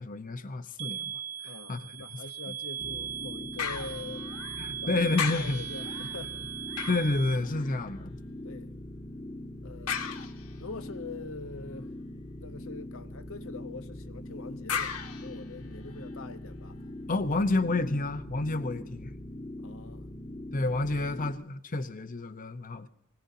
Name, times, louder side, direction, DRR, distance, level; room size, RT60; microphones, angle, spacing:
voice 1, 0.0-2.0 4.6-5.6 6.9-8.2 17.1-19.1 20.5-22.9, left 2 dB, 40° left, 0.8 m, -30 dB
sound 1, 0.8-7.4, right 9 dB, 75° right, 0.6 m, -39 dB
voice 2, 1.4-4.3 4.8-5.0 5.2-6.5 8.4-8.7 9.6-10.3 10.5-11.9 12.3-16.8 19.6-20.1, left 3 dB, 65° left, 0.9 m, -44 dB
sound 2, 2.8-21.3, left 1 dB, 20° left, 1.2 m, -42 dB
sound 3, 3.6-4.8 5.1-8.0 9.9-10.8 14.7-16.1 16.7-16.8, left 7 dB, 80° left, 1.5 m, -37 dB
24.0 x 18.0 x 2.7 m
head